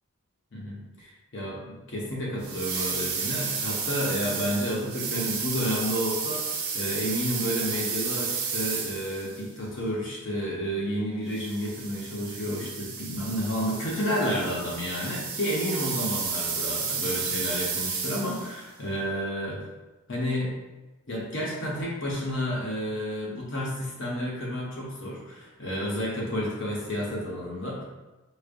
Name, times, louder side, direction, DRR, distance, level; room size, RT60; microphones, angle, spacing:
voice 1, 0.5-6.4 6.7-19.6 20.1-20.5 21.1-27.8, equal, 55° left, -4 dB, 0.8 m, -31 dB
sound 1, 2.4-9.4 11.3-18.6, right 5 dB, 75° right, 0.6 m, -32 dB
4.9 x 2.0 x 2.5 m, 1.1 s
head